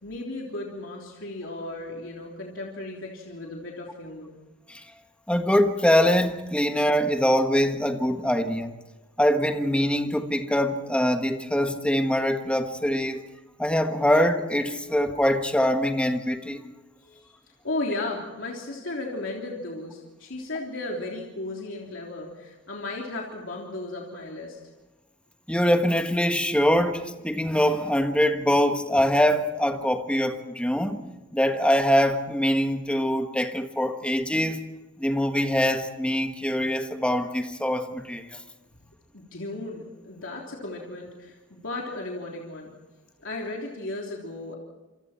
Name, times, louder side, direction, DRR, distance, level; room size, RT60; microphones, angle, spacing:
voice 1, 0.0-4.3 17.0-17.4 17.6-24.6 39.1-42.7 43.2-44.6, left 2 dB, 70° left, 3.4 m, -35 dB
voice 2, 5.3-8.7 9.2-13.2 13.6-16.6 25.5-31.0 31.3-34.6 35.0-38.4, equal, 5° left, 1.5 m, -23 dB
27.5 x 27.0 x 4.5 m
head